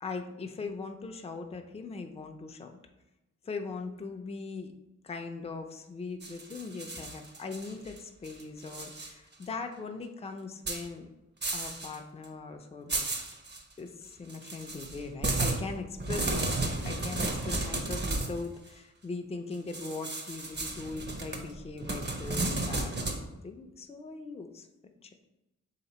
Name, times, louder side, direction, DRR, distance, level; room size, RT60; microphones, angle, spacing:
voice 1, 0.0-2.8 3.4-4.7 5.0-11.1 11.5-13.1 13.8-23.2 23.4-24.7 25.0-25.1, left 4 dB, 20° left, 5 dB, 0.4 m, -40 dB
sound 1, 6.2-8.0 8.2-9.1 9.4-9.5 10.7-10.8 11.4-12.0 12.2-12.3 12.9-13.6 14.3-18.4 19.7-23.2, right 2 dB, 35° right, 0.7 m, -33 dB
3.2 x 2.9 x 4.2 m, 0.97 s
cardioid pair, 60°, 31 cm